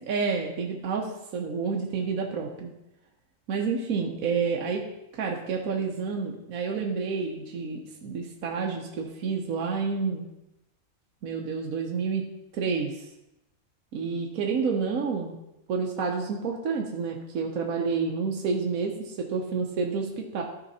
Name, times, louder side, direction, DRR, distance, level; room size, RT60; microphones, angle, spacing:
voice 1, 0.1-2.7 3.5-4.9 5.1-10.2 11.2-12.2 12.5-13.1 13.9-15.3 15.7-20.4, right 5 dB, 70° right, 0 dB, 1.3 m, -29 dB
13.0 x 5.0 x 4.1 m, 0.90 s
omnidirectional pair, 1.6 m